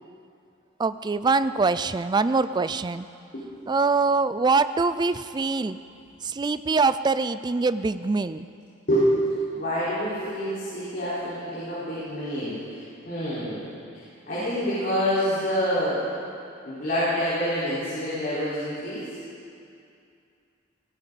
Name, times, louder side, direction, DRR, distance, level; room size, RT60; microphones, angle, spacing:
voice 1, 0.8-3.1 3.7-5.8 6.2-8.5 14.4-14.6, right 4 dB, 20° right, 13 dB, 0.3 m, -24 dB
voice 2, 9.5-13.7 14.3-16.0 16.6-19.1, equal, 50° left, -12 dB, 4.7 m, -27 dB
18.5 x 18.5 x 4.2 m, 2.5 s
head